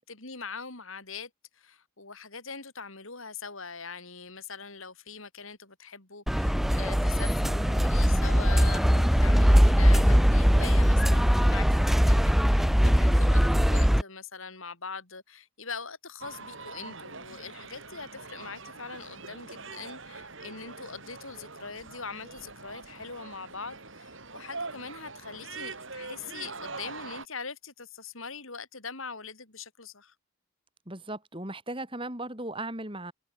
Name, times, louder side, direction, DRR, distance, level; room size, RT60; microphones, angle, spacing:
voice 1, 0.0-30.1, left 5 dB, 70° left, 4.7 m, -42 dB
sound 1, 6.3-14.0, equal, ahead, 0.4 m, -21 dB
sound 2, 16.2-27.3, right 4 dB, 60° right, 5.1 m, -43 dB
voice 2, 30.9-33.1, right 2 dB, 25° right, 5.1 m, -37 dB
head